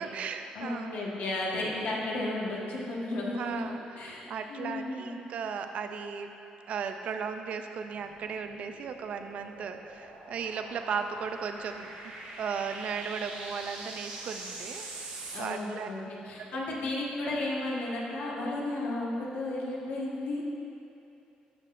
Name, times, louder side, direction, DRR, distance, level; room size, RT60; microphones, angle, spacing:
voice 1, 0.0-1.0 2.1-2.3 3.3-6.3 6.7-11.9 12.4-14.9 15.4-15.9 16.4-16.8, right 6 dB, 55° right, 6 dB, 0.4 m, -36 dB
voice 2, 0.5-3.7 4.0-5.1 15.3-20.4, left 2 dB, 70° left, -4 dB, 1.3 m, -33 dB
sound 1, 7.9-15.4, right 2 dB, 90° right, 1.4 m, -44 dB
13.0 x 5.9 x 2.5 m, 2.8 s
cardioid pair, 155°, 3 cm